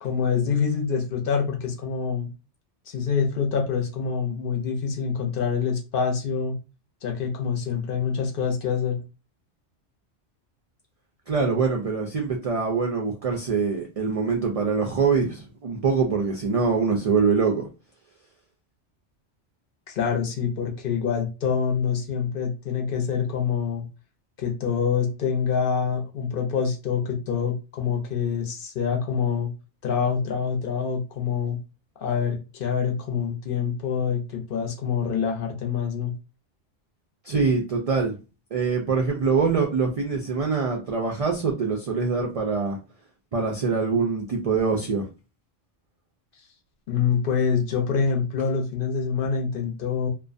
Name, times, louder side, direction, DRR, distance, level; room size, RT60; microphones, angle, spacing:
voice 1, 0.0-2.3 2.9-6.5 7.0-9.0 19.9-23.8 24.4-29.5 29.8-31.6 32.0-36.1 46.9-50.1, left 6 dB, 60° left, 1 dB, 0.7 m, -26 dB
voice 2, 11.3-17.6 37.2-38.1 38.5-42.8 43.3-45.1, right 5 dB, 70° right, 1 dB, 0.3 m, -24 dB
2.4 x 2.1 x 2.5 m, 0.31 s
omnidirectional pair, 1.1 m